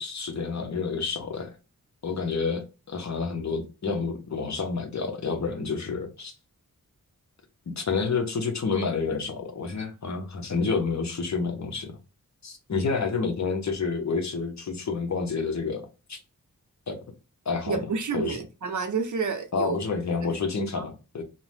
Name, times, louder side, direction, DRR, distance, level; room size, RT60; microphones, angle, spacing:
voice 1, 0.0-1.5 2.0-6.3 7.7-11.9 12.4-16.2 16.9-17.0 17.5-17.8 18.1-18.4 19.5-21.2, left 4 dB, 55° left, 0.7 m, -29 dB
voice 2, 17.7-19.8 20.2-20.3 20.7-20.8, right 5 dB, 60° right, 0.6 m, -29 dB
2.7 x 2.0 x 3.1 m
wide cardioid pair, 85°, 35 cm